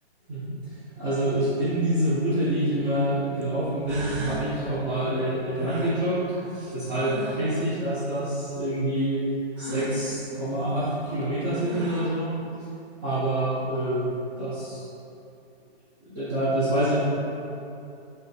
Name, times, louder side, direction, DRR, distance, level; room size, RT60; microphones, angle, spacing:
voice 1, 0.3-6.2 6.7-9.3 9.6-12.3 13.0-14.1 14.4-14.9 16.1-17.0, right 1 dB, 20° right, -13 dB, 0.7 m, -26 dB
sound 1, 3.4-3.5 3.9-4.5 5.6-7.5 9.6-10.0 11.2-11.3 11.6-12.2, right 2 dB, 90° right, 0.8 m, -37 dB
4.2 x 2.6 x 3.5 m, 2.7 s
hypercardioid pair, 150°, 33 cm